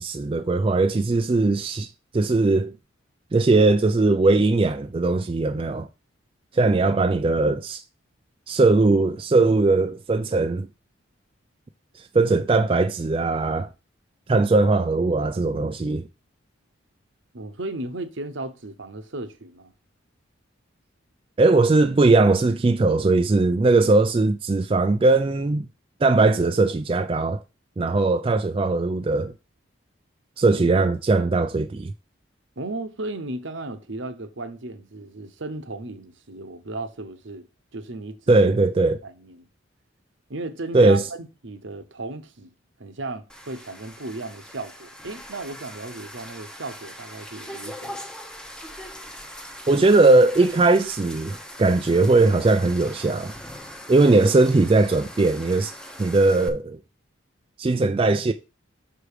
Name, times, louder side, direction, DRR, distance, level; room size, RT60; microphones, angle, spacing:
voice 1, 0.0-1.9 2.1-2.7 3.3-5.9 6.5-7.8 8.5-10.7 12.0-13.7 14.3-16.1 21.4-25.6 26.0-27.4 27.8-29.3 30.4-31.9 38.3-39.0 40.7-41.0 49.7-53.3 53.9-55.7 56.0-56.8 57.6-58.3, right 3 dB, 25° right, 0.3 m, -19 dB
voice 2, 17.3-19.7 32.6-37.4 37.7-38.3 39.0-39.5 40.3-41.0 41.4-42.5 42.8-48.0, right 2 dB, 70° right, 1.0 m, -35 dB
sound 1, 43.3-56.5, equal, 5° left, 0.7 m, -41 dB
6.1 x 4.8 x 4.9 m
head